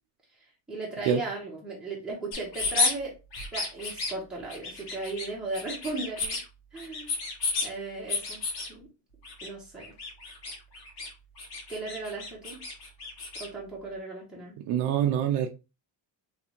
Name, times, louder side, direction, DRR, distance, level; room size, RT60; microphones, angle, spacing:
voice 1, 0.7-3.1 3.5-6.4 6.7-7.1 7.6-8.4 8.7-8.9 9.4-9.9 11.7-12.6 13.3-14.5, right 3 dB, ahead, -5 dB, 1.0 m, -36 dB
sound 1, 2.3-2.9 3.3-4.1 4.5-5.3 5.5-6.4 6.8-7.7 8.1-8.7 9.2-9.5 9.8-11.1 11.4-13.5, left 4 dB, 60° left, 1.8 m, -32 dB
voice 2, 14.6-15.5, right 9 dB, 65° right, 3 dB, 0.6 m, -25 dB
3.4 x 3.2 x 3.0 m, 0.29 s
cardioid pair, 180°, 44 cm